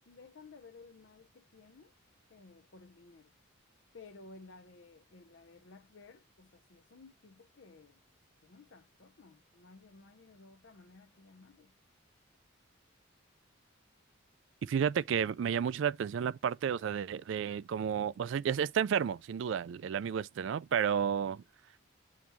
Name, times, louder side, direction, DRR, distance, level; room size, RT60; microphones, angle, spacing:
voice 1, 0.1-1.9 2.3-3.3 3.9-8.0 8.4-11.7, left 3 dB, 60° left, 0.6 m, -56 dB
voice 2, 14.6-21.4, right 7 dB, 60° right, 0.3 m, -32 dB
7.3 x 2.9 x 4.5 m
head